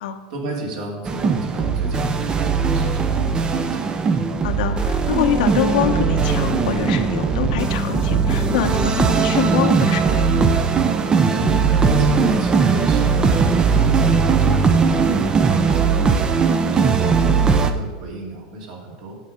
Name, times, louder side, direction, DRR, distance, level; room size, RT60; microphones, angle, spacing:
voice 1, 0.3-3.9 11.4-16.3 16.7-19.2, right 1 dB, 65° right, -1 dB, 3.0 m, -32 dB
sound 1, 1.1-17.7, right 5 dB, 20° right, 0.6 m, -19 dB
voice 2, 4.4-10.3, left 9 dB, 75° left, 6 dB, 1.0 m, -24 dB
9.5 x 7.3 x 5.2 m, 1.3 s
supercardioid pair, 140°, 4 cm